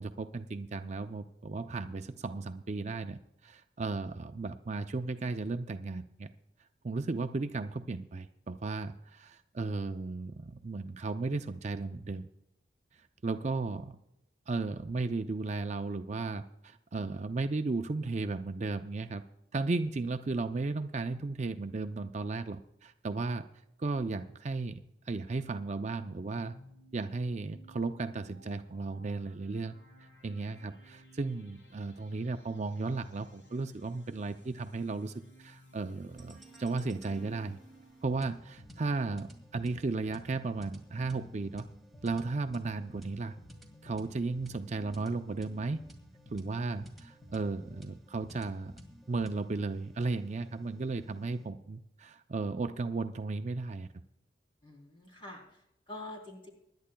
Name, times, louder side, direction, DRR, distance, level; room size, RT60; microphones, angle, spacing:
voice 1, 0.0-6.3 6.8-12.3 13.2-14.0 14.5-19.2 19.5-23.5 23.8-26.5 26.9-29.7 30.2-37.6 38.0-41.7 42.0-43.4 43.8-45.8 46.3-48.7 49.1-53.9, right 3 dB, 40° right, 8 dB, 0.4 m, -35 dB
sound 1, 25.8-38.4, equal, 85° left, 4.0 m, -60 dB
sound 2, 36.2-51.5, equal, ahead, 1.9 m, -53 dB
voice 2, 54.6-56.5, left 2 dB, 30° left, 1 dB, 3.5 m, -46 dB
25.0 x 11.5 x 2.3 m, 0.82 s
head